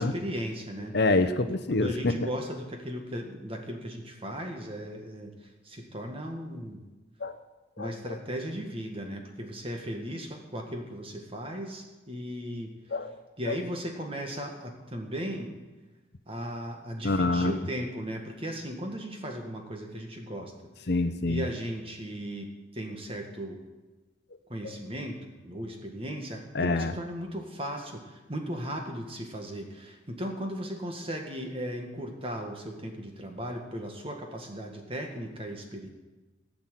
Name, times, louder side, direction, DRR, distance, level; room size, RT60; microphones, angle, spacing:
voice 1, 0.0-0.9 1.7-5.3 5.6-6.8 7.8-12.7 13.4-15.5 16.3-20.5 21.3-23.6 24.5-25.2 25.4-35.9, equal, 30° right, 3 dB, 1.8 m, -36 dB
voice 2, 0.9-2.3 7.2-7.4 7.8-8.2 12.9-13.1 13.5-13.6 17.0-17.6 20.9-21.4 24.6-24.8 26.5-26.9, left 2 dB, 55° left, 10 dB, 0.8 m, -26 dB
16.0 x 6.0 x 9.1 m, 1.2 s
head